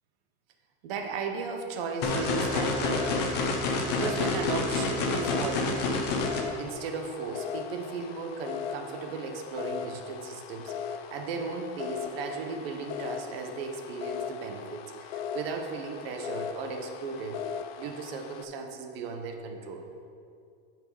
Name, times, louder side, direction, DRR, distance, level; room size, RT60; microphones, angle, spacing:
voice 1, 0.8-6.3 6.6-17.4 17.8-19.9, right 4 dB, 60° right, 4 dB, 1.1 m, -36 dB
sound 1, 2.0-6.4, left 3 dB, 30° left, 0.8 m, -28 dB
sound 2, 2.5-18.5, left 7 dB, 65° left, 0.7 m, -39 dB
8.9 x 4.6 x 5.5 m, 2.4 s
supercardioid pair, 165°, 33 cm